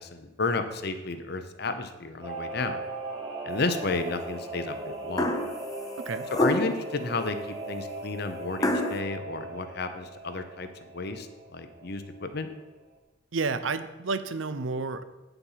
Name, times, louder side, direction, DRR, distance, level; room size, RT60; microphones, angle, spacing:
voice 1, 0.0-2.8 3.4-5.3 6.3-10.7 10.9-12.5, left 3 dB, 55° left, 9 dB, 0.8 m, -32 dB
Singing / Musical instrument, 2.2-12.3 12.6-12.7, right 2 dB, 25° right, 1.5 m, -38 dB
sound 1, 5.2-5.6 6.3-6.9 8.6-9.0, left 1 dB, 20° left, 0.7 m, -26 dB
voice 2, 6.0-6.3 13.3-15.0, right 4 dB, 80° right, 12 dB, 0.6 m, -30 dB
8.8 x 6.9 x 5.7 m, 1.2 s
head